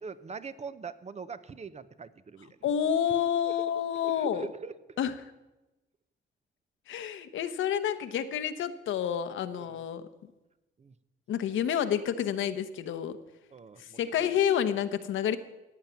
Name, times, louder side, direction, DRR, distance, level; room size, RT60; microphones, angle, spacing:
voice 1, 0.0-2.6 3.5-3.6 4.0-5.0 9.6-9.8 10.8-10.9 13.5-14.3, right 5 dB, 35° right, 14 dB, 0.8 m, -43 dB
voice 2, 2.6-4.5 5.0-5.3 6.9-10.1 11.3-13.2 13.8-15.4, left 9 dB, 90° left, 9 dB, 1.0 m, -29 dB
15.0 x 9.0 x 7.1 m, 1.0 s
cardioid pair, 100°, 20 cm